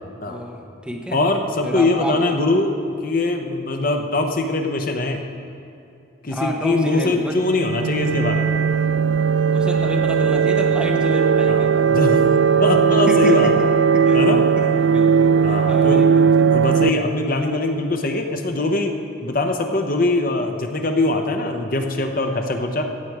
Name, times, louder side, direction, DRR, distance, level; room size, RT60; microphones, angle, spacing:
voice 1, 0.3-1.2 1.6-2.2 6.3-7.4 9.5-11.9 12.9-13.7 13.9-14.2 14.6-16.6, equal, 5° right, 0 dB, 1.1 m, -30 dB
voice 2, 1.1-5.3 6.2-8.5 11.5-12.3 12.6-13.5 14.1-14.4 15.4-16.0 16.5-18.9 19.2-22.9, left 2 dB, 45° left, 4 dB, 0.8 m, -22 dB
sound 1, 7.3-16.9, right 6 dB, 70° right, 0.3 m, -17 dB
16.0 x 7.6 x 4.8 m, 2.6 s
head